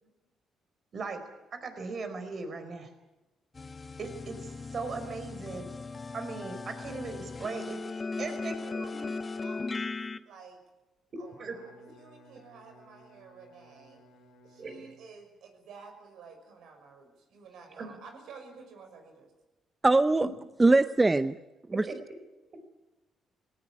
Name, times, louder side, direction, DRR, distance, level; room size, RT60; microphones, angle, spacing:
voice 1, 1.5-2.9 4.0-5.7 6.1-8.6 8.9-9.1 11.4-11.6 14.6-14.9 17.8-18.0 20.2-20.3 21.9-22.0 22.5-22.6, right 4 dB, 50° right, 8 dB, 4.6 m, -38 dB
sound 1, 3.5-10.2, left 3 dB, 30° left, 1.2 m, -38 dB
voice 2, 8.1-10.0 10.3-10.6 11.2-14.0 14.5-19.3, right 5 dB, 80° right, 5 dB, 6.1 m, -51 dB
Bowed string instrument, 11.1-15.4, equal, 85° left, 4.8 m, -58 dB
voice 3, 19.8-20.3 20.6-21.4 21.7-21.8, right 2 dB, 20° right, 12 dB, 0.7 m, -21 dB
19.5 x 18.5 x 9.9 m, 1.0 s
cardioid pair, 90°, 0 cm